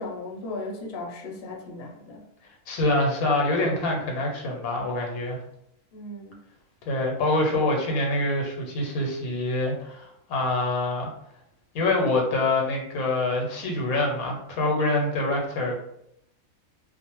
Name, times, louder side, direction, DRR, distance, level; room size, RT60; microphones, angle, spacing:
voice 1, 0.0-2.2 5.9-6.4, left 2 dB, 55° left, -1 dB, 0.8 m, -36 dB
voice 2, 2.7-5.4 6.9-11.1 11.7-15.8, left 2 dB, 85° left, 1 dB, 1.1 m, -25 dB
2.4 x 2.1 x 2.9 m, 0.78 s
omnidirectional pair, 1.5 m